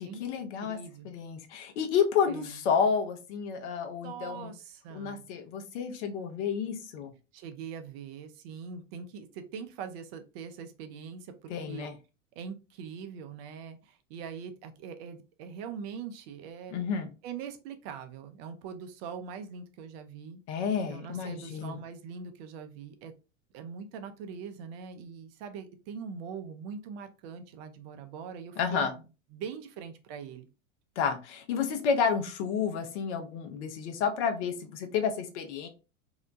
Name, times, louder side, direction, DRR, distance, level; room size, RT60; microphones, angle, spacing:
voice 1, 0.0-0.8 1.0-4.5 4.9-7.1 11.5-11.9 16.7-17.1 20.5-21.8 28.6-28.9 31.0-35.7, left 6 dB, 60° left, 6 dB, 0.8 m, -30 dB
voice 2, 0.6-1.1 2.3-2.6 4.0-5.2 7.3-11.9 12.4-16.9 17.2-20.4 20.9-23.1 23.5-29.0 29.3-30.5, right 6 dB, 50° right, 8 dB, 0.6 m, -42 dB
2.8 x 2.1 x 2.5 m, 0.31 s
hypercardioid pair, 95°, 39 cm